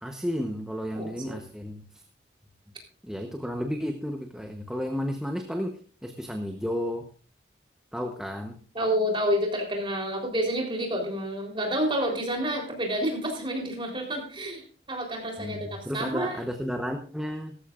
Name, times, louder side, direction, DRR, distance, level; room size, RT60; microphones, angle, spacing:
voice 1, 0.0-2.0 3.0-7.1 7.9-8.6 15.4-17.6, equal, 5° right, 4 dB, 1.0 m, -32 dB
voice 2, 0.9-1.4 8.7-16.4, equal, 25° right, 1 dB, 3.8 m, -29 dB
17.0 x 14.0 x 2.5 m, 0.41 s
head